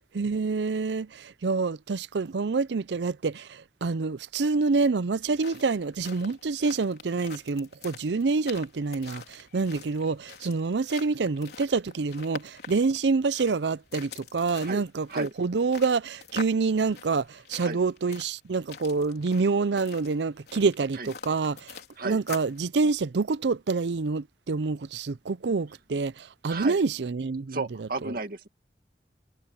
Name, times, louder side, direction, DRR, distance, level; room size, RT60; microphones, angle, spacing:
voice 1, 0.1-21.8 22.0-28.1, right 4 dB, 75° right, 0.5 m, -27 dB
sound 1, 5.1-22.6, left 5 dB, 65° left, 4.2 m, -45 dB
voice 2, 26.4-26.8 27.5-28.5, right 3 dB, 55° right, 2.2 m, -33 dB
head